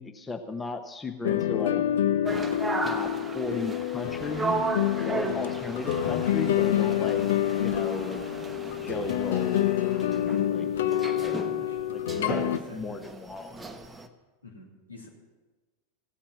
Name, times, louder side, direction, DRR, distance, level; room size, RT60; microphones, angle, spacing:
voice 1, 0.0-1.8 2.8-4.7 5.0-7.2 7.6-8.2 8.8-10.1 10.5-10.7 11.2-13.7, left 3 dB, 15° left, 6 dB, 0.9 m, -36 dB
sound 1, 1.2-12.6, left 11 dB, 60° left, 0.6 m, -27 dB
sound 2, 2.2-14.1, right 4 dB, 10° right, 1.0 m, -36 dB
voice 2, 10.7-12.0 12.5-13.0 14.4-15.1, left 3 dB, 75° left, -1 dB, 2.9 m, -47 dB
16.0 x 8.6 x 7.2 m, 1.2 s
figure-of-eight pair, 90°, 0 cm